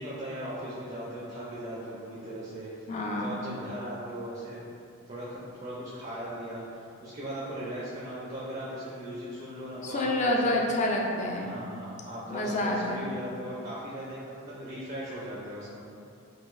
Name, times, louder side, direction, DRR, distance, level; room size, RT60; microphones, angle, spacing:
voice 1, 0.0-2.9 3.2-4.7 5.1-10.6 11.4-15.8, equal, 30° right, -8 dB, 0.5 m, -38 dB
voice 2, 2.9-3.3 9.8-11.6 12.3-13.1, left 1 dB, 35° left, -1 dB, 0.4 m, -28 dB
3.8 x 2.4 x 2.5 m, 2.6 s
head